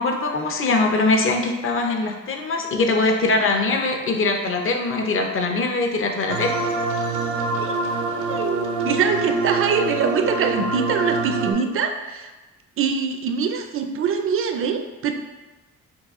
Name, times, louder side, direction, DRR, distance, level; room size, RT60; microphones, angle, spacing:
voice 1, 0.0-6.6, left 3 dB, 45° left, 3 dB, 0.8 m, -22 dB
sound 1, 6.3-11.5, right 3 dB, 75° right, 0.7 m, -25 dB
voice 2, 8.3-12.3 12.8-15.1, right 6 dB, 45° right, 6 dB, 0.5 m, -23 dB
6.0 x 2.3 x 3.6 m, 1.2 s
cardioid pair, 90°, 30 cm